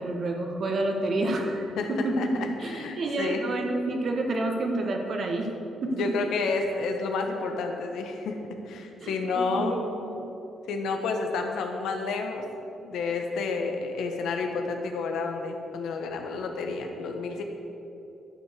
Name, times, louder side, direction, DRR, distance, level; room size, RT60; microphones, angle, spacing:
voice 1, 0.0-2.3 2.6-5.5 5.8-6.2 9.0-10.3, right 2 dB, 40° right, 3 dB, 1.5 m, -29 dB
voice 2, 2.2-3.4 5.9-8.4 8.7-9.8 10.7-12.4 12.8-17.4, left 4 dB, 75° left, 4 dB, 1.5 m, -30 dB
12.0 x 7.7 x 6.8 m, 2.9 s
cardioid pair, 140°, 0 cm